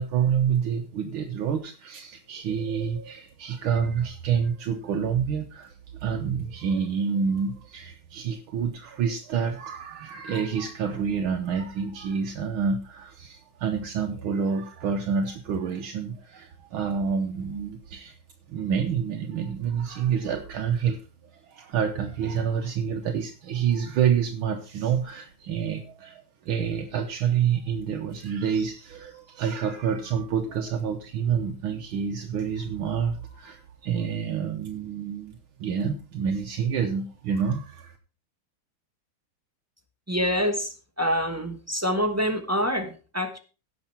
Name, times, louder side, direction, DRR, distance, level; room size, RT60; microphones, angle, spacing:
voice 1, 0.0-18.2 18.5-21.0 21.3-37.9, right 7 dB, 75° right, 4 dB, 1.8 m, -28 dB
voice 2, 40.1-43.4, equal, 10° right, 6 dB, 0.7 m, -26 dB
16.5 x 6.1 x 4.4 m, 0.33 s
omnidirectional pair, 2.3 m